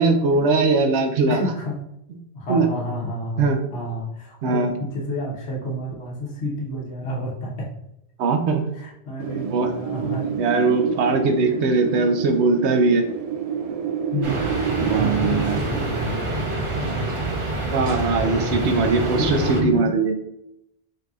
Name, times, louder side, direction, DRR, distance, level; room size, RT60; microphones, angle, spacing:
voice 1, 0.0-1.4 2.5-2.7 3.4-3.6 4.4-4.7 8.2-8.7 9.5-9.7 10.4-13.0 14.8-15.6 17.7-20.1, right 4 dB, 80° right, 6 dB, 1.0 m, -20 dB
voice 2, 1.2-1.8 2.3-7.7 8.7-10.4 11.5-11.6 14.1-14.6 14.8-16.4 16.8-17.1 18.2-19.9, left 1 dB, 70° left, -4 dB, 1.3 m, -30 dB
Wind, 9.2-17.9, right 7 dB, 65° right, 0.3 m, -30 dB
sound 1, 14.2-19.6, right 1 dB, 35° right, 0.7 m, -26 dB
5.3 x 4.0 x 2.4 m, 0.82 s
omnidirectional pair, 1.1 m